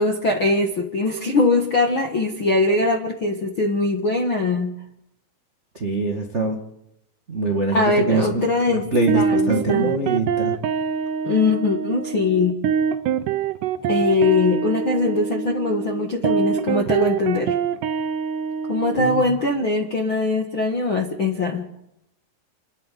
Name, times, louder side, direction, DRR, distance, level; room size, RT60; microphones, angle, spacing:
voice 1, 0.0-4.7 7.7-8.9 9.1-9.9 11.2-12.6 13.9-17.6 18.7-21.7, left 3 dB, 60° left, 2 dB, 1.3 m, -21 dB
voice 2, 5.7-6.6 7.3-10.5 18.9-19.2, right 2 dB, 55° right, 1 dB, 0.7 m, -24 dB
sound 1, 8.9-19.2, right 7 dB, 85° right, 1.8 m, -24 dB
30.0 x 10.5 x 9.4 m, 0.79 s
omnidirectional pair, 5.1 m